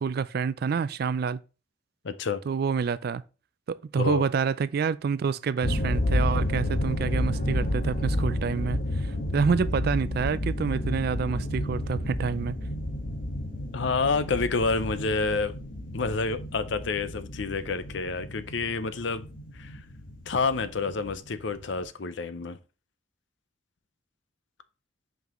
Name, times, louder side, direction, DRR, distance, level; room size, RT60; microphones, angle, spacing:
voice 1, 0.0-1.4 2.5-3.2 3.7-12.6, right 6 dB, 50° right, 0.3 m, -28 dB
voice 2, 2.0-2.4 4.0-4.2 13.7-15.5 15.9-19.3 19.5-19.8 20.3-22.6, left 4 dB, 65° left, 0.6 m, -28 dB
sound 1, 5.6-21.9, left 1 dB, 45° left, 1.6 m, -31 dB
5.8 x 5.3 x 3.1 m
head